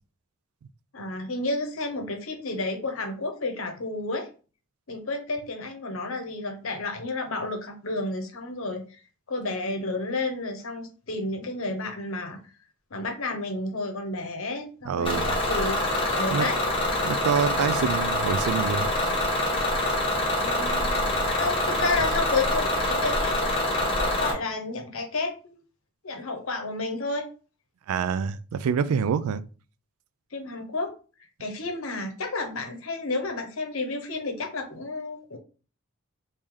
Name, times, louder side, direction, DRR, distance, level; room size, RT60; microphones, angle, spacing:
voice 1, 0.9-4.3 4.9-9.0 9.3-12.5 12.9-15.8 16.2-16.6 20.4-25.6 26.0-27.3 30.3-30.9 31.4-35.4, left 3 dB, 65° left, 0.8 m, -31 dB
voice 2, 14.8-15.3 16.3-16.5 17.0-18.9 27.9-29.5, right 6 dB, 80° right, 0.3 m, -26 dB
Bus / Engine, 15.0-24.3, left 1 dB, 25° left, 1.0 m, -25 dB
3.1 x 2.7 x 3.7 m
head